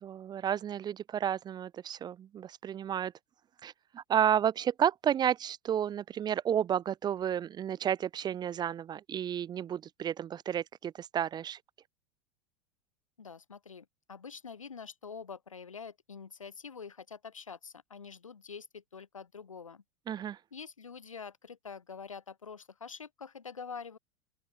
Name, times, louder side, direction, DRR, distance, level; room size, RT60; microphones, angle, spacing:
voice 1, 0.0-3.1 3.6-11.6 20.1-20.4, right 9 dB, 25° right, 0.6 m, -31 dB
voice 2, 13.2-19.8 20.5-24.0, left 6 dB, 80° left, 2.1 m, -46 dB
open air
figure-of-eight pair, 80°, 17 cm